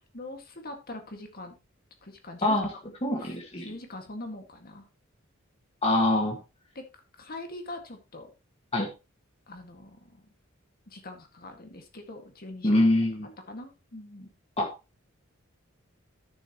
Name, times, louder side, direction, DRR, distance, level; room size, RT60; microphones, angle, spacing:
voice 1, 0.1-1.5 2.0-2.6 2.8-4.9 6.8-6.9 7.2-8.3 9.5-10.3 10.9-12.9 13.5-14.3, left 2 dB, 45° left, 4 dB, 2.0 m, -43 dB
voice 2, 3.0-3.7 5.8-6.4 8.7-8.9 12.6-13.3 14.6-14.7, left 1 dB, 30° left, 1 dB, 1.7 m, -24 dB
13.5 x 6.9 x 3.0 m, 0.28 s
head